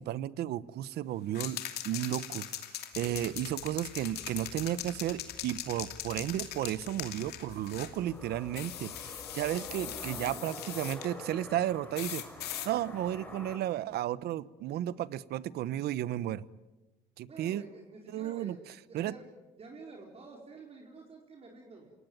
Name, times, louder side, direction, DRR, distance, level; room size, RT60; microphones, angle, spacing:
voice 1, 0.0-12.2 12.6-16.5 17.2-17.6 18.1-18.5 18.9-19.1, right 12 dB, 70° right, 18 dB, 1.0 m, -33 dB
sound 1, 1.3-8.0 8.5-11.1 11.9-12.7, left 11 dB, 70° left, 2.7 m, -41 dB
sound 2, 2.9-10.4, left 6 dB, 55° left, 5.4 m, -55 dB
sound 3, 7.9-13.6, left 1 dB, 10° left, 4.9 m, -46 dB
voice 2, 9.9-10.3 17.3-18.6 18.9-19.3 19.5-21.9, right 3 dB, 35° right, 0 dB, 4.5 m, -49 dB
28.0 x 18.5 x 9.3 m, 1.1 s
cardioid pair, 110°, 17 cm